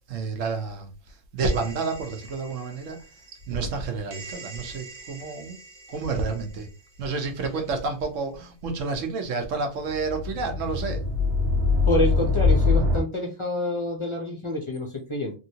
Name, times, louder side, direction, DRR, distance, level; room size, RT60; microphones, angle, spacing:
voice 1, 0.1-0.9 1.3-3.0 3.3-5.6 5.9-6.7 7.0-11.0, right 4 dB, 70° right, 1.1 m, -29 dB
sound 1, 1.4-2.5 4.1-5.9 9.8-13.0, left 3 dB, 55° right, 0.9 m, -25 dB
voice 2, 11.9-15.3, left 1 dB, 35° left, 0.5 m, -27 dB
3.1 x 2.8 x 2.7 m
omnidirectional pair, 1.4 m